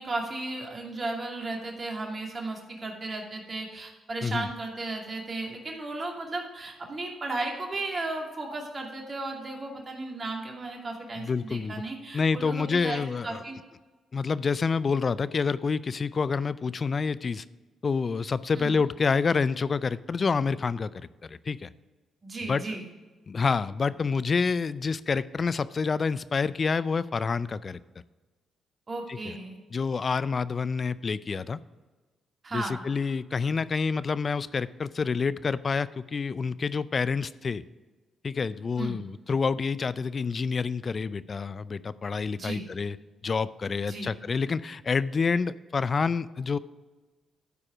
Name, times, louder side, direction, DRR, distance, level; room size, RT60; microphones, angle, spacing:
voice 1, 0.0-13.6 18.6-18.8 22.2-22.9 28.9-29.6 32.4-32.8 38.8-39.0 42.3-42.7 43.9-44.1, right 2 dB, 40° right, 0 dB, 2.5 m, -35 dB
voice 2, 11.2-11.7 12.1-13.4 14.1-17.4 17.8-21.7 22.5-22.6 23.3-27.8 29.1-29.3 29.7-31.6 32.5-37.6 38.2-43.0 43.2-46.6, left 5 dB, 45° left, 17 dB, 0.4 m, -28 dB
13.0 x 4.9 x 4.9 m, 1.3 s
supercardioid pair, 50°, 0 cm